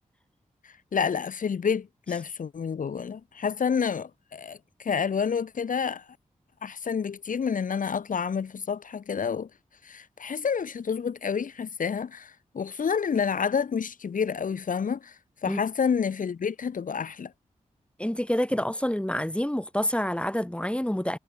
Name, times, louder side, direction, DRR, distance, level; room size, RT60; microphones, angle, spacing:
voice 1, 0.9-6.0 6.6-9.5 9.8-15.1 15.4-17.3, left 6 dB, 75° left, 1.0 m, -29 dB
voice 2, 18.0-21.2, equal, 10° left, 1.9 m, -27 dB
cardioid pair, 45°, 14 cm